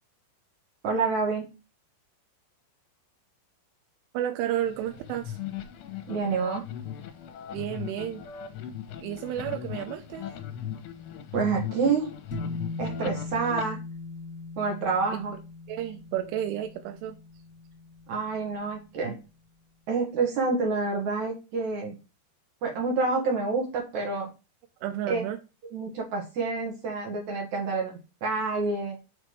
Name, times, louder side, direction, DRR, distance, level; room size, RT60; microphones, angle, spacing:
voice 1, 0.8-1.5 6.1-6.6 11.3-12.1 12.8-13.8 14.6-15.3 18.1-19.2 19.9-22.0 22.6-24.3 25.1-25.3 25.7-29.0, right 4 dB, 65° right, 1.8 m, -28 dB
voice 2, 4.1-5.4 7.5-8.3 9.0-10.3 15.7-17.2 24.8-25.4, right 11 dB, 85° right, 3.1 m, -31 dB
sound 1, 4.7-13.6, left 9 dB, 80° left, 3.3 m, -38 dB
sound 2, 12.3-18.9, left 3 dB, 30° left, 1.5 m, -39 dB
7.5 x 3.5 x 4.7 m
omnidirectional pair, 5.6 m